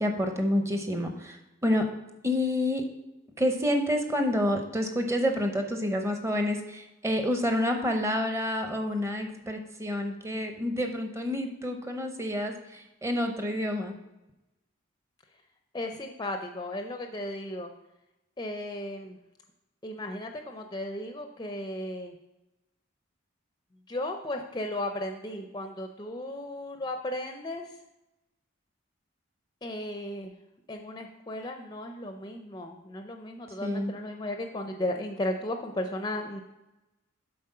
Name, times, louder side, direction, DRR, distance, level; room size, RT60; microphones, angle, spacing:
voice 1, 0.0-1.8 2.2-2.8 3.4-13.9 33.6-33.9, left 1 dB, 15° right, 5 dB, 0.7 m, -28 dB
voice 2, 15.7-17.7 18.4-19.2 19.8-22.2 23.9-27.8 29.6-30.4 30.7-36.4, left 1 dB, 20° left, 5 dB, 0.4 m, -35 dB
7.5 x 4.3 x 5.4 m, 0.96 s
head